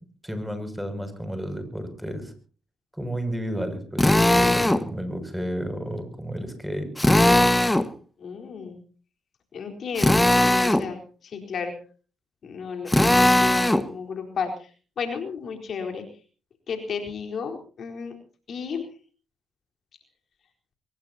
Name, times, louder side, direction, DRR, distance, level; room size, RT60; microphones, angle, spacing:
voice 1, 0.2-2.3 2.9-6.9, equal, 5° right, 8 dB, 6.8 m, -32 dB
Drill, 4.0-4.8 7.0-7.9 10.0-10.8 12.9-13.8, left 1 dB, 10° left, 1.7 m, -18 dB
voice 2, 8.2-8.8 9.5-11.0 11.2-11.7 12.4-14.7 15.0-16.0 16.7-18.2 18.5-18.9, left 6 dB, 60° left, 4 dB, 4.2 m, -33 dB
23.5 x 21.5 x 2.9 m, 0.38 s
supercardioid pair, 50°, 0 cm